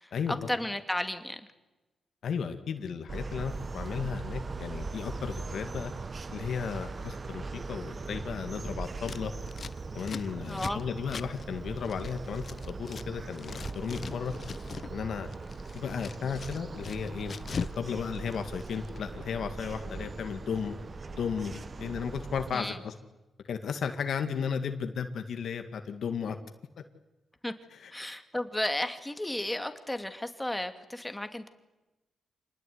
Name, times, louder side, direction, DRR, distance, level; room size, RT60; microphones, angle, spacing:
voice 1, 0.5-1.4 10.5-10.8 22.5-22.8 27.4-27.5 27.9-31.5, left 1 dB, 10° left, 8 dB, 2.6 m, -33 dB
voice 2, 2.2-5.9 6.3-9.3 9.9-14.3 14.9-15.3 15.7-20.8 21.1-22.9 23.5-26.4 27.7-27.9, left 6 dB, 70° left, 7 dB, 2.1 m, -34 dB
sound 1, 3.1-22.5, right 3 dB, 35° right, 1.1 m, -40 dB
Scissors, 9.0-13.1 13.3-14.9 15.2-17.8 18.1-19.0, left 5 dB, 45° left, 0.8 m, -41 dB
27.0 x 20.0 x 9.6 m, 1.1 s
cardioid pair, 100°, 0 cm